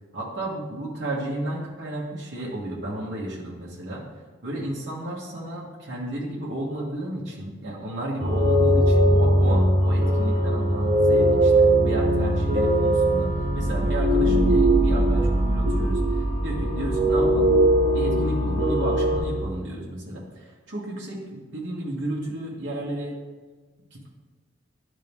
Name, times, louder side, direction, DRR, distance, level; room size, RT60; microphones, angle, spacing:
voice 1, 0.1-4.0 4.4-11.5 11.8-17.6 17.9-21.2 21.5-23.2 23.9-24.1, right 1 dB, 75° right, -5 dB, 1.3 m, -32 dB
sound 1, 8.2-19.2, right 1 dB, 40° right, 1.2 m, -20 dB
11.0 x 3.7 x 3.5 m, 1.4 s
head